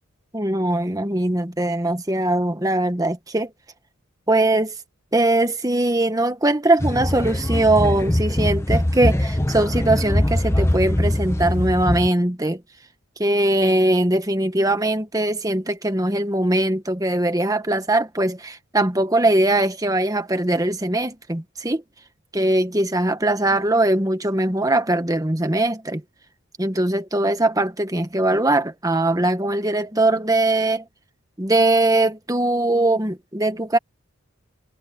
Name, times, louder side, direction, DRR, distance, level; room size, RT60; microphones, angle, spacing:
voice 1, 0.3-3.5 4.3-4.8 5.1-12.6 13.2-21.8 22.3-26.0 26.6-30.8 31.4-33.8, right 1 dB, 15° right, 1.3 m, -21 dB
sound 1, 6.8-12.1, left 1 dB, 10° left, 0.8 m, -22 dB
head